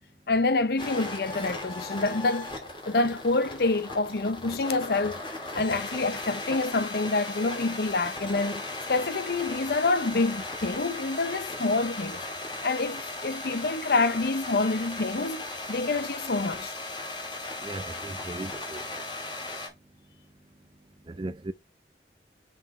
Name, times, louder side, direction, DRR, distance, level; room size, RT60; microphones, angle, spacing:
voice 1, 0.3-2.5 2.9-5.2 5.5-8.6 8.9-12.2 12.6-15.4 15.7-16.7, left 3 dB, 60° left, 0.7 m, -27 dB
sound 1, 0.8-19.7, left 2 dB, 30° left, 2.4 m, -37 dB
voice 2, 17.6-18.8 21.1-21.5, right 2 dB, 30° right, 0.5 m, -37 dB
5.8 x 5.5 x 4.3 m
head